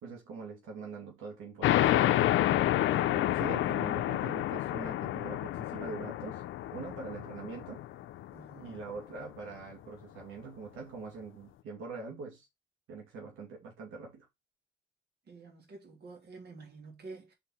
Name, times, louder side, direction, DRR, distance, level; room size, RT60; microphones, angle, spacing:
voice 1, 0.0-2.1 3.1-6.4 6.7-7.8 8.6-12.5 12.9-14.3, right 4 dB, 90° right, 2.4 m, -43 dB
sound 1, 1.6-8.8, left 13 dB, 80° left, 0.5 m, -29 dB
voice 2, 2.9-3.5 8.3-8.8 15.3-17.3, right 3 dB, 55° right, 2.8 m, -50 dB
5.2 x 4.4 x 4.4 m
cardioid pair, 90°, 20 cm